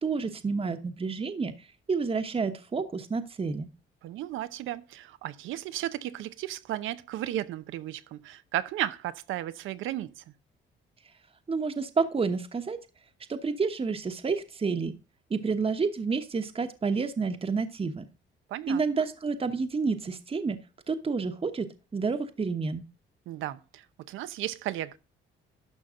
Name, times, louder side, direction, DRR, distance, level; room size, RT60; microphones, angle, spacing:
voice 1, 0.0-1.5 1.9-3.7 11.5-12.8 13.3-14.9 15.3-18.1 18.7-20.6 20.9-22.8, right 4 dB, 30° right, 1.1 m, -29 dB
voice 2, 4.0-10.2 18.5-18.8 23.3-25.0, right 13 dB, 90° right, 0.8 m, -34 dB
12.0 x 5.8 x 3.7 m
cardioid pair, 90°, 20 cm